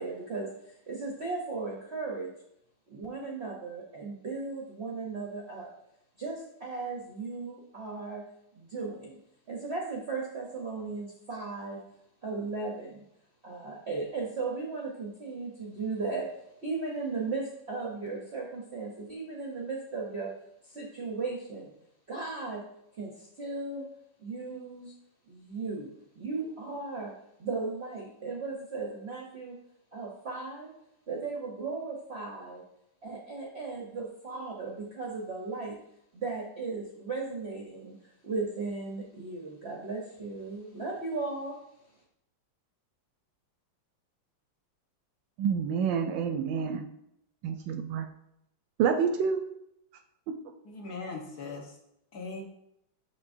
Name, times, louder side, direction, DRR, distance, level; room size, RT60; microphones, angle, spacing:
voice 1, 0.0-2.3 2.9-5.7 6.2-8.3 8.6-9.2 9.5-11.8 12.2-13.0 13.4-16.3 16.6-20.3 20.6-21.7 22.1-22.7 23.0-23.9 24.2-24.9 25.3-27.1 27.4-29.6 29.9-30.7 31.1-32.6 33.0-35.8 36.1-41.6, right 3 dB, 55° right, -2 dB, 0.7 m, -36 dB
voice 2, 45.4-46.9 47.4-48.1 48.8-49.4 50.3-50.4, right 7 dB, 75° right, 7 dB, 1.2 m, -28 dB
voice 3, 50.6-51.7 52.1-52.4, left 3 dB, 55° left, 0 dB, 1.4 m, -39 dB
7.3 x 6.1 x 2.6 m, 0.79 s
omnidirectional pair, 2.2 m